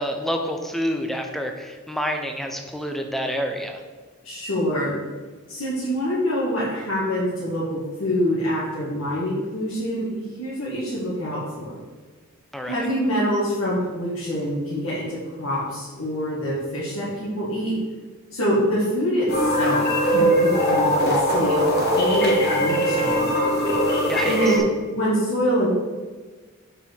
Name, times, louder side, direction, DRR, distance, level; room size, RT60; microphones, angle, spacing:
voice 1, 0.0-3.8 12.5-12.8 24.1-24.5, equal, ahead, 4 dB, 0.6 m, -28 dB
voice 2, 4.2-4.9 5.5-10.1 10.4-11.8 12.6-17.7 18.3-21.6 21.9-23.3 24.3-24.6 24.9-25.7, equal, 70° left, -9 dB, 1.9 m, -25 dB
sound 1, 19.3-24.6, equal, 45° left, 1.8 m, -20 dB
7.1 x 5.6 x 4.6 m, 1.4 s
head